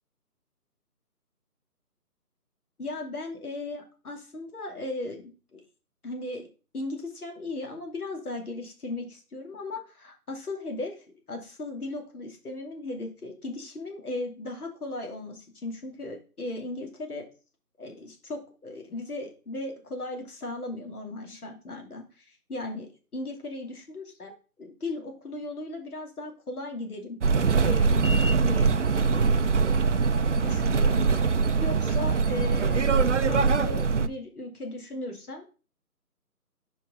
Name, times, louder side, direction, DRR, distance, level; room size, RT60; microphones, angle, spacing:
voice 1, 2.8-5.2 5.5-5.6 6.0-6.5 6.7-17.2 17.8-24.3 24.6-27.2 27.6-28.7 29.1-29.3 30.3-31.1 31.6-35.4, left 2 dB, 70° left, 3 dB, 2.6 m, -37 dB
sound 1, 27.2-34.1, right 4 dB, 50° right, 0.5 m, -23 dB
5.4 x 4.6 x 5.4 m, 0.35 s
figure-of-eight pair, 160°, 47 cm